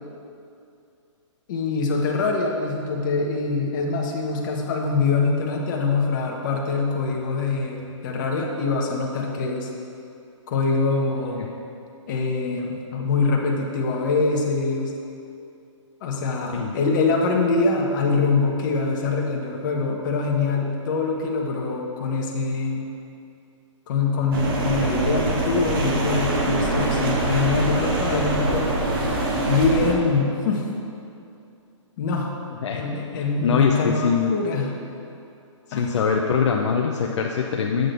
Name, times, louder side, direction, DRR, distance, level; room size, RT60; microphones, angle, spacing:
voice 1, 1.5-9.7 10.5-11.5 12.1-14.9 16.0-22.9 23.9-28.7 29.5-30.7 32.0-32.4 32.7-34.8 35.7-36.0, left 4 dB, 40° left, 0 dB, 1.1 m, -24 dB
sound 1, 24.3-30.0, right 1 dB, 45° right, 1.2 m, -23 dB
voice 2, 33.1-34.3 35.7-37.9, left 6 dB, 65° left, 1 dB, 0.6 m, -23 dB
7.8 x 3.7 x 6.7 m, 2.6 s
hypercardioid pair, 155°, 16 cm